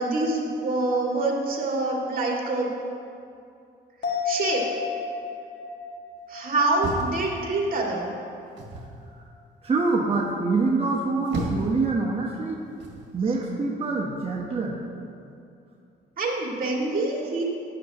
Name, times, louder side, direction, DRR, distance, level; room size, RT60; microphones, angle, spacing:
voice 1, 0.0-2.7 4.2-4.6 6.3-8.1 16.2-17.4, right 2 dB, 45° right, -2 dB, 2.3 m, -25 dB
sound 1, 4.0-7.7 8.1-8.2, left 6 dB, 60° left, 1.7 m, -33 dB
sound 2, 6.8-7.8 8.6-9.0 10.9-11.8 12.8-13.1, right 2 dB, 60° right, 1.7 m, -32 dB
voice 2, 9.6-12.7 13.1-14.8, right 3 dB, 30° right, -3 dB, 1.1 m, -25 dB
11.5 x 9.7 x 3.0 m, 2.5 s
cardioid pair, 90°, 20 cm